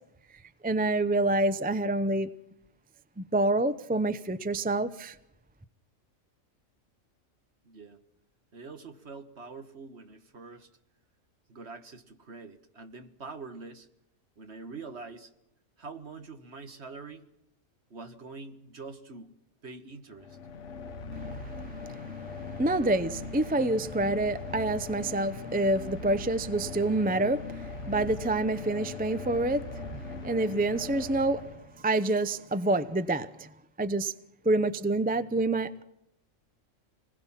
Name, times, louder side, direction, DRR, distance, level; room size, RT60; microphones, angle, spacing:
voice 1, 0.6-2.3 3.2-5.2 21.1-31.5 31.8-33.5 33.8-34.1 34.4-35.8, right 2 dB, 10° right, 0.5 m, -28 dB
voice 2, 7.6-8.0 8.5-10.7 11.5-13.9 14.4-15.3 15.8-17.2 17.9-20.4, right 4 dB, 55° right, 1.8 m, -45 dB
sound 1, 20.1-32.0, left 4 dB, 60° left, 1.4 m, -40 dB
26.5 x 20.0 x 5.8 m
omnidirectional pair, 1.4 m